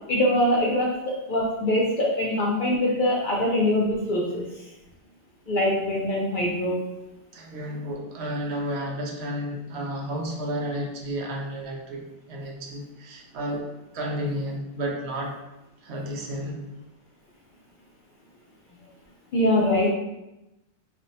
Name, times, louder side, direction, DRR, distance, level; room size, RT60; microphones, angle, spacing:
voice 1, 0.1-4.7 5.5-6.9 19.3-19.9, left 1 dB, 60° left, -3 dB, 0.5 m, -23 dB
voice 2, 7.3-13.7 13.9-15.4 15.8-16.6, equal, 70° right, 0 dB, 0.8 m, -32 dB
2.5 x 2.1 x 3.9 m, 0.95 s
omnidirectional pair, 1.2 m